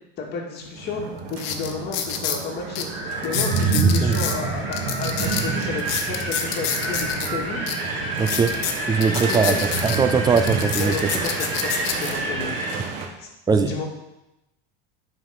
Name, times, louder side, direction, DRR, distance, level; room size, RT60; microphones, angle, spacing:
voice 1, 0.2-1.0 1.3-7.6 9.2-9.6 10.8-12.5 13.2-13.9, left 4 dB, 35° left, -1 dB, 2.1 m, -32 dB
sound 1, 0.6-0.7 1.3-2.4 2.7-2.8 3.2-4.4 4.7-7.3 7.7-7.8 8.2-10.0 10.4-12.1 12.8-13.0, left 9 dB, 70° left, 1.2 m, -28 dB
sound 2, 0.8-13.1, right 4 dB, 80° right, 1.6 m, -29 dB
Wind, 2.9-12.8, right 1 dB, 45° right, 3.4 m, -30 dB
voice 2, 3.7-4.2 8.2-9.6 9.8-11.0 13.5-13.7, right 5 dB, 15° right, 9 dB, 0.3 m, -21 dB
9.4 x 5.1 x 5.7 m, 0.92 s
cardioid pair, 155°, 30 cm